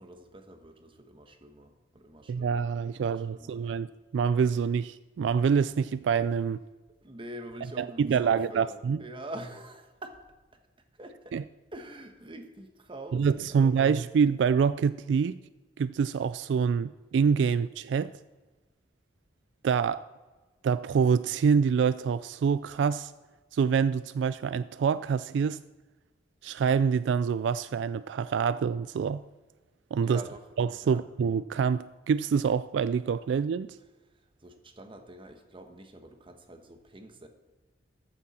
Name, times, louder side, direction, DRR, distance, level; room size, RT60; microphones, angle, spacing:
voice 1, 0.0-3.8 7.0-10.2 10.9-11.4 11.7-13.9 30.0-30.5 30.8-31.0 34.1-37.3, right 1 dB, 30° right, 6 dB, 1.2 m, -45 dB
voice 2, 2.3-3.9 4.1-6.6 7.8-9.0 11.3-11.4 13.1-15.4 15.8-18.1 19.6-20.1 20.6-23.1 23.5-25.6 26.4-29.2 29.9-30.2 30.6-33.7, right 6 dB, 75° right, 16 dB, 0.3 m, -26 dB
14.0 x 9.7 x 4.3 m, 1.2 s
head